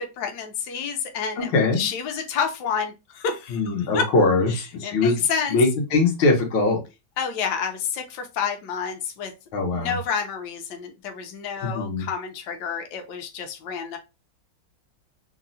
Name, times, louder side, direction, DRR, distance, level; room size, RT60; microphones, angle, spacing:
voice 1, 0.0-1.5 1.8-4.0 4.5-5.6 7.2-9.3 9.7-14.0, left 6 dB, 70° left, 4 dB, 1.1 m, -29 dB
voice 2, 1.4-1.8 3.5-5.2 5.5-6.8 9.5-10.0 11.7-12.1, left 3 dB, 85° left, 0 dB, 1.6 m, -21 dB
3.6 x 2.0 x 2.5 m, 0.26 s
omnidirectional pair, 2.1 m